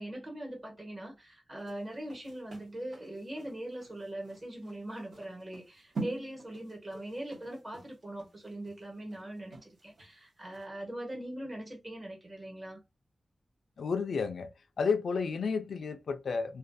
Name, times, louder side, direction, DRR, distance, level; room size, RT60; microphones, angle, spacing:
voice 1, 0.0-12.8, right 1 dB, 35° right, 1.1 m, -41 dB
sound 1, 1.6-10.1 10.5-10.6, right 3 dB, 70° right, 1.1 m, -45 dB
voice 2, 13.8-16.6, left 5 dB, 85° left, 0.3 m, -32 dB
2.3 x 2.2 x 2.5 m
wide cardioid pair, 155°, 0 cm